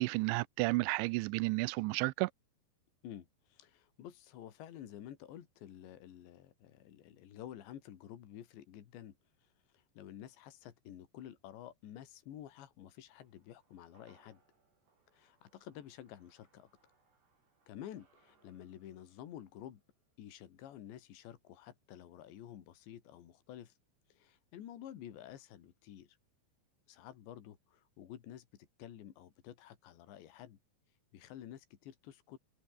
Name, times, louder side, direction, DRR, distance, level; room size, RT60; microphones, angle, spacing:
voice 1, 0.0-2.3, right 24 dB, 85° right, 2.9 m, -32 dB
voice 2, 3.0-9.1 9.4-9.5 9.7-14.4 15.1-16.7 17.7-19.8 20.2-23.7 24.1-26.2 26.9-30.6 31.1-32.4, left 11 dB, 75° left, 4.5 m, -51 dB
sound 1, 13.2-21.7 22.0-22.1, right 4 dB, 65° right, 9.9 m, -74 dB
omnidirectional pair, 5.2 m